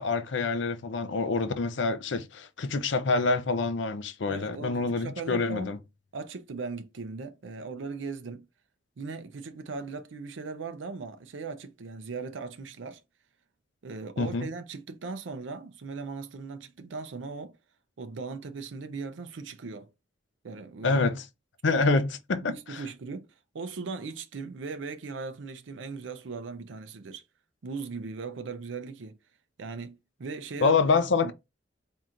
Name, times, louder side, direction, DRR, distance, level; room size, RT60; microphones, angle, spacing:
voice 1, 0.0-5.8 14.2-14.5 20.8-21.2 21.6-22.8 30.6-31.3, left 3 dB, 70° left, 0.6 m, -26 dB
voice 2, 4.3-5.7 6.1-8.5 9.0-13.0 13.8-17.6 18.0-19.9 20.4-21.0 21.7-21.8 22.4-23.3 23.5-27.2 27.6-29.2 29.6-30.8 31.2-31.3, right 4 dB, 80° right, 0.5 m, -38 dB
4.3 x 3.7 x 2.5 m
head